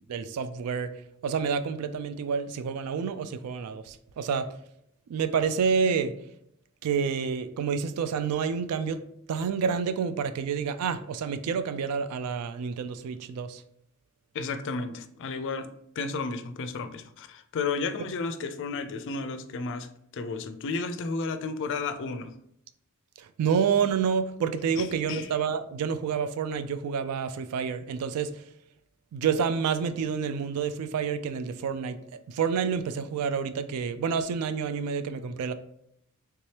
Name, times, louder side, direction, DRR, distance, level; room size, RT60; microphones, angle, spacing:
voice 1, 0.1-0.9 1.2-4.5 5.1-6.1 6.8-9.0 9.3-13.6 23.4-28.3 29.1-32.0 32.3-35.5, right 6 dB, 80° right, 0.3 m, -28 dB
voice 2, 14.3-19.9 20.1-22.3 24.8-25.3, left 4 dB, 55° left, 0.4 m, -33 dB
3.4 x 2.8 x 3.2 m
head